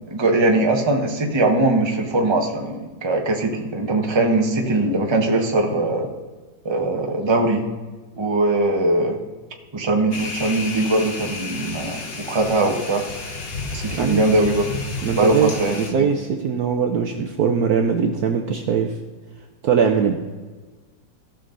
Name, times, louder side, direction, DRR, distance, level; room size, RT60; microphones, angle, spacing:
voice 1, 0.1-6.1 6.6-7.6 8.2-9.2 9.7-12.0 12.3-13.0 13.7-14.6 15.1-16.1, right 2 dB, 20° right, 2 dB, 0.9 m, -21 dB
sound 1, 10.1-15.9, left 3 dB, 35° left, 1.1 m, -32 dB
voice 2, 13.9-14.3 15.0-19.0 19.6-20.2, right 6 dB, 65° right, 4 dB, 1.1 m, -21 dB
16.0 x 6.1 x 3.9 m, 1.3 s
omnidirectional pair, 2.1 m